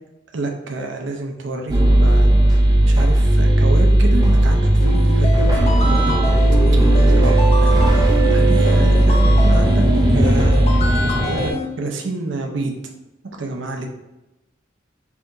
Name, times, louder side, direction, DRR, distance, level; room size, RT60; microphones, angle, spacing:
voice 1, 0.3-6.4 6.9-9.8 10.1-12.7 13.4-13.9, right 2 dB, 70° right, 2 dB, 0.6 m, -29 dB
sound 1, 1.7-11.5, right 1 dB, 20° right, 0.6 m, -15 dB
sound 2, 4.8-11.6, left 1 dB, 30° left, 0.5 m, -26 dB
5.7 x 2.9 x 2.6 m, 0.95 s
head